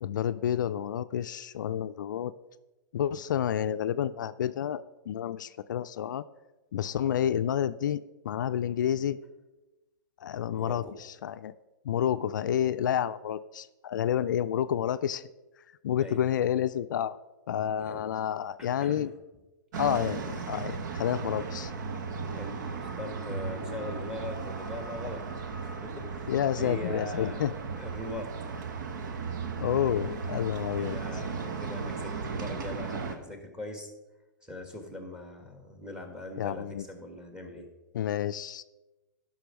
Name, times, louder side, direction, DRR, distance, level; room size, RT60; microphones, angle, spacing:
voice 1, 0.0-2.3 2.9-6.2 6.7-9.2 10.2-11.5 11.8-15.2 15.8-17.2 17.5-19.1 19.8-21.7 26.3-27.5 29.6-31.2 36.4-36.9 37.9-38.6, left 10 dB, 70° left, 12 dB, 0.4 m, -29 dB
voice 2, 10.5-10.9 16.0-16.2 17.9-18.0 18.6-19.1 22.3-25.2 25.6-28.3 30.8-33.9 34.4-37.7, left 1 dB, 5° right, 5 dB, 1.7 m, -41 dB
sound 1, 19.7-33.2, right 5 dB, 65° right, 1.2 m, -36 dB
12.0 x 5.7 x 5.1 m, 1.1 s
hypercardioid pair, 120°, 11 cm